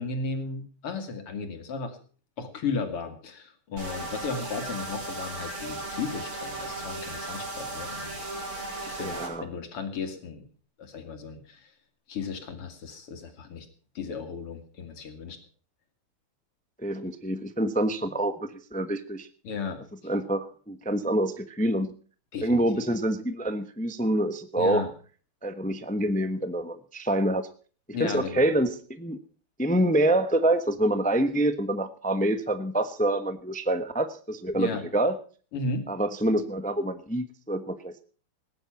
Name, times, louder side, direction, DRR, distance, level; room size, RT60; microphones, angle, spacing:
voice 1, 0.0-2.0 2.4-8.2 8.8-10.4 10.8-11.7 12.1-13.7 13.9-15.4 19.4-19.8 22.3-22.6 24.6-24.9 27.9-28.5 34.5-34.8 35.5-35.9, left 4 dB, 90° left, 7 dB, 3.2 m, -35 dB
sound 1, 3.8-9.3, right 2 dB, 75° right, 5.9 m, -36 dB
voice 2, 9.0-9.4 16.8-19.3 20.0-21.9 22.4-24.9 25.4-27.5 28.0-29.2 29.6-35.2 35.9-38.0, right 1 dB, 10° left, 10 dB, 0.4 m, -26 dB
19.0 x 10.5 x 5.8 m, 0.41 s
omnidirectional pair, 2.4 m